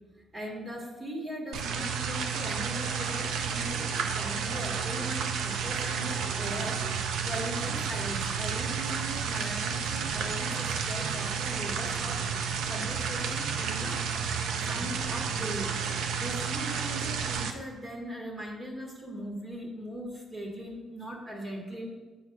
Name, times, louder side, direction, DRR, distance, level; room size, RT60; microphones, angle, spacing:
voice 1, 0.3-14.0 14.6-15.8 16.1-22.0, equal, 30° right, 0 dB, 1.7 m, -39 dB
sound 1, 1.5-17.5, right 6 dB, 80° right, 0.6 m, -31 dB
8.4 x 4.6 x 4.8 m, 1.2 s
cardioid pair, 90°, 0 cm